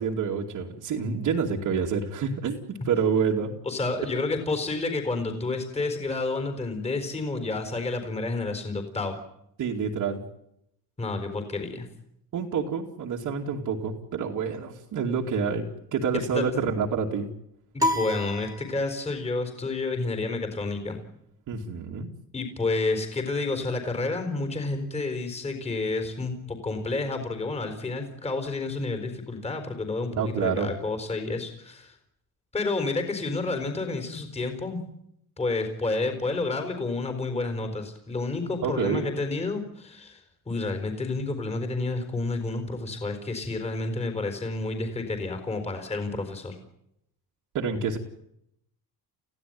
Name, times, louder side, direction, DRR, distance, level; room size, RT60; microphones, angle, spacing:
voice 1, 0.0-3.5 9.6-10.2 12.3-15.7 15.9-17.3 21.5-22.1 30.1-30.7 38.6-39.1 47.5-48.0, right 6 dB, 50° right, -1 dB, 2.6 m, -28 dB
voice 2, 3.7-9.1 11.0-11.9 16.1-16.5 17.7-21.0 22.3-31.9 32.5-34.8 35.4-40.2 40.5-46.6, left 3 dB, 15° left, 7 dB, 4.2 m, -30 dB
sound 1, 17.8-19.2, left 1 dB, 10° right, 2.9 m, -29 dB
29.5 x 16.0 x 9.5 m, 0.79 s
cardioid pair, 175°, 39 cm